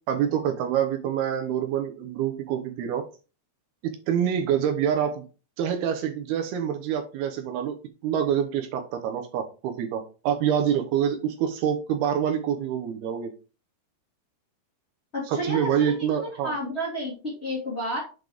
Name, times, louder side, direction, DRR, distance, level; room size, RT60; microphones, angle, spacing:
voice 1, 0.1-3.0 3.8-5.2 5.6-7.8 8.0-13.3 15.3-16.5, right 9 dB, 75° right, 5 dB, 2.5 m, -26 dB
voice 2, 15.1-18.0, equal, 25° left, -4 dB, 1.4 m, -31 dB
7.5 x 5.7 x 3.5 m, 0.33 s
omnidirectional pair, 5.3 m